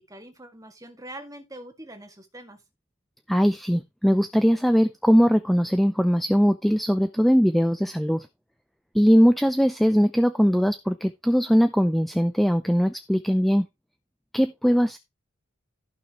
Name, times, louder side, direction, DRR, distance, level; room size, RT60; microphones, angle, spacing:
voice 1, 0.1-2.6, right 1 dB, 15° right, 1.8 m, -43 dB
voice 2, 3.3-8.3 8.9-13.7 14.3-15.0, equal, ahead, 0.5 m, -20 dB
15.0 x 6.0 x 3.1 m
head